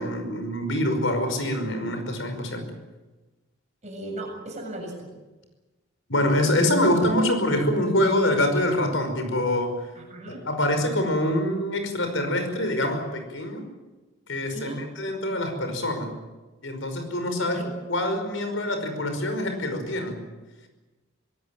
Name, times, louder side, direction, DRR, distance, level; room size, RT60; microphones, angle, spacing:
voice 1, 0.0-2.6 6.1-9.9 10.3-13.6 14.3-16.1 16.6-17.6 17.9-20.2, left 1 dB, 70° left, 7 dB, 5.3 m, -25 dB
voice 2, 3.8-5.1 9.9-10.4 14.5-14.8 17.5-17.7, right 1 dB, 35° right, 1 dB, 7.5 m, -37 dB
23.5 x 18.5 x 9.0 m, 1.2 s
head